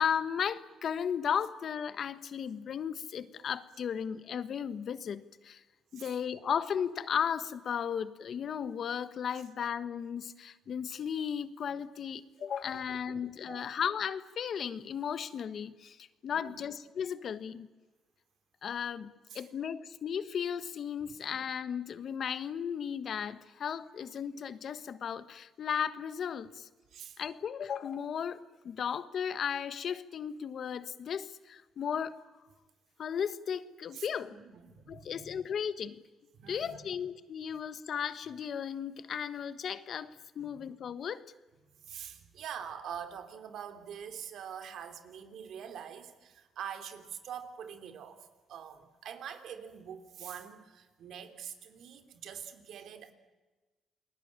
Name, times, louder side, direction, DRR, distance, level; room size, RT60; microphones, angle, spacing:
voice 1, 0.0-5.6 5.9-17.7 18.6-26.7 27.2-32.2 33.0-34.4 34.9-36.0 36.5-41.3, left 8 dB, 60° left, 1.3 m, -35 dB
voice 2, 12.7-13.7 16.3-16.6 19.3-19.4 21.0-21.1 26.9-27.2 33.9-35.3 36.3-36.9 40.4-40.6 41.8-53.1, right 8 dB, 75° right, 3.1 m, -45 dB
29.0 x 20.5 x 8.9 m
cardioid pair, 90°, 0 cm